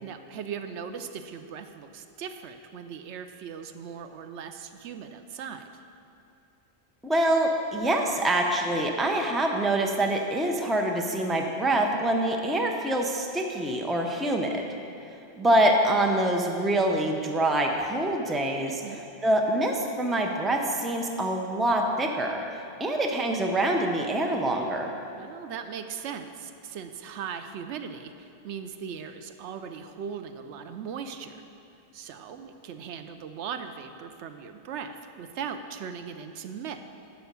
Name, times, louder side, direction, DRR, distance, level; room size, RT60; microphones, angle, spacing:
voice 1, 0.0-5.8 18.7-19.0 25.2-31.4 31.9-36.8, right 7 dB, 90° right, 8 dB, 0.9 m, -39 dB
voice 2, 7.0-14.6 15.4-18.7 19.2-24.9, right 1 dB, ahead, 2 dB, 0.5 m, -25 dB
9.2 x 5.7 x 6.7 m, 2.8 s
omnidirectional pair, 1.1 m